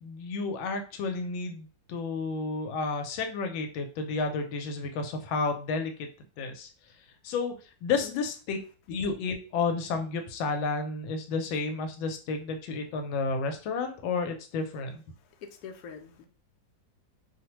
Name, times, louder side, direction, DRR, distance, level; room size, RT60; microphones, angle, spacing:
voice 1, 0.0-6.1 6.4-6.7 7.2-7.5 7.8-8.6 8.9-15.0, left 4 dB, 85° left, 5 dB, 1.4 m, -31 dB
voice 2, 15.4-16.2, left 7 dB, 70° left, 3 dB, 0.9 m, -44 dB
3.1 x 2.1 x 2.9 m, 0.36 s
omnidirectional pair, 2.1 m